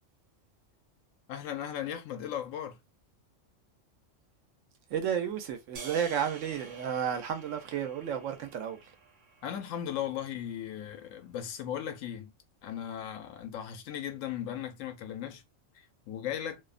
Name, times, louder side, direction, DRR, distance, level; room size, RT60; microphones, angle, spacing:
voice 1, 1.3-2.8 9.4-12.3 12.6-15.4 15.7-16.6, left 10 dB, 85° left, 1.0 m, -37 dB
voice 2, 4.9-8.9, right 8 dB, 80° right, 1.0 m, -32 dB
sound 1, 5.7-10.1, right 5 dB, 50° right, 0.6 m, -49 dB
2.7 x 2.0 x 2.4 m
omnidirectional pair, 1.3 m